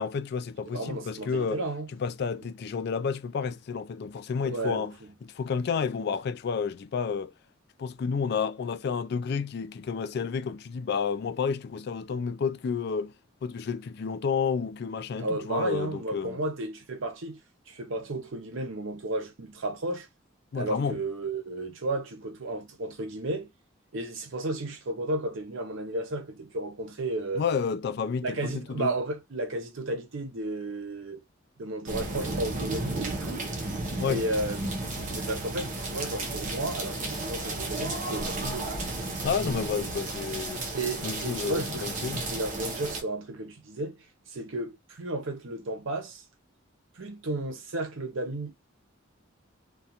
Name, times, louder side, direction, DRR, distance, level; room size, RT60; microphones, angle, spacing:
voice 1, 0.0-1.6 2.0-4.9 5.3-7.3 7.8-13.1 13.4-16.4 20.5-21.0 27.3-28.9 34.0-34.2 39.2-40.6 41.0-42.2, left 6 dB, 55° left, 0.3 m, -30 dB
voice 2, 0.7-1.9 4.4-5.1 15.2-17.4 17.7-20.1 20.5-23.5 23.9-27.4 28.2-31.2 31.6-33.5 33.9-34.6 35.2-38.7 40.7-41.9 42.2-46.2 46.9-48.5, right 2 dB, 75° right, 0.7 m, -33 dB
sound 1, 31.9-43.0, right 2 dB, 40° right, 0.7 m, -33 dB
2.4 x 2.2 x 2.8 m
head